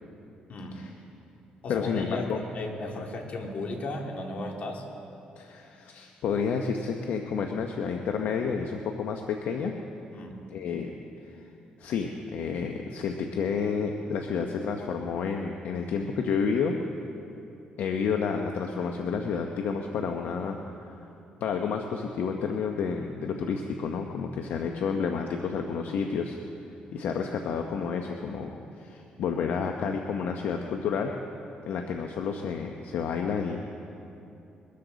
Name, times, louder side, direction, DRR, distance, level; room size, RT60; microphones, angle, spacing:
voice 1, 0.5-0.8 1.6-4.9 10.1-10.4, left 2 dB, 55° left, 1 dB, 2.5 m, -35 dB
voice 2, 1.7-2.4 5.4-9.8 10.5-10.9 11.2-11.5 11.8-16.8 17.8-20.6 20.9-21.0 21.4-26.4 26.9-31.1 31.7-33.6, left 6 dB, 75° left, 4 dB, 0.9 m, -30 dB
22.5 x 13.5 x 4.0 m, 2.8 s
cardioid pair, 80°, 3 cm